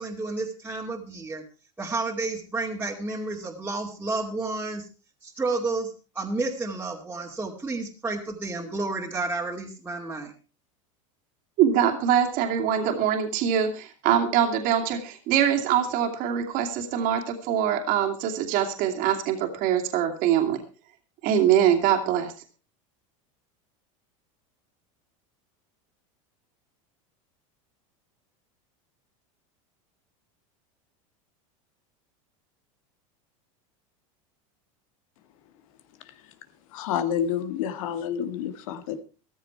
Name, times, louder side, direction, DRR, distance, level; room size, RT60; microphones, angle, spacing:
voice 1, 0.0-1.4 1.8-4.9 5.2-10.3, right 3 dB, 10° right, -3 dB, 2.4 m, -31 dB
voice 2, 11.6-20.6 21.2-22.3, right 9 dB, 55° right, 3 dB, 2.6 m, -23 dB
voice 3, 36.7-39.0, left 9 dB, 75° left, 11 dB, 1.8 m, -29 dB
14.5 x 13.5 x 4.6 m, 0.35 s
supercardioid pair, 120°, 18 cm